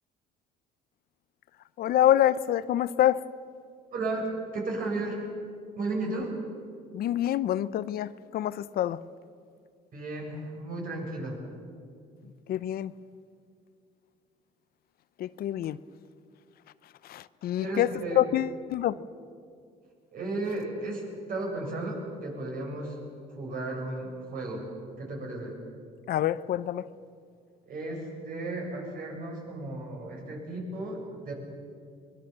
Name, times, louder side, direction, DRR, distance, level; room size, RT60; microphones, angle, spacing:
voice 1, 1.8-3.3 6.0-6.1 6.9-9.0 12.5-12.9 15.2-15.8 17.0-19.0 26.1-26.9, left 12 dB, 65° left, 0.7 m, -26 dB
voice 2, 3.9-5.2 5.8-6.4 9.9-11.4 17.6-18.2 20.1-21.0 21.3-23.0 23.3-24.6 25.0-25.6 27.7-31.3, right 2 dB, 55° right, 7.8 m, -34 dB
23.5 x 22.0 x 7.5 m
cardioid pair, 110°, 17 cm